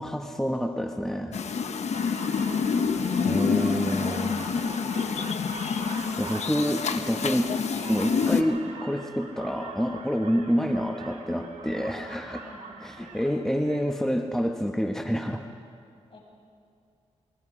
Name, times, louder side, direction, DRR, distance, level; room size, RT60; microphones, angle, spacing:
voice 1, 0.0-1.4 3.2-4.4 6.2-7.6 7.9-12.4 12.8-15.5, equal, 5° left, 4 dB, 1.1 m, -28 dB
sound 1, 1.3-8.4, left 6 dB, 70° left, 1.0 m, -27 dB
sound 2, 1.9-13.9, right 4 dB, 70° right, 2.5 m, -42 dB
voice 2, 13.0-13.4 16.1-16.2, left 1 dB, 50° left, -2 dB, 7.3 m, -47 dB
27.5 x 22.0 x 5.0 m, 2.3 s
cardioid pair, 70°, 12 cm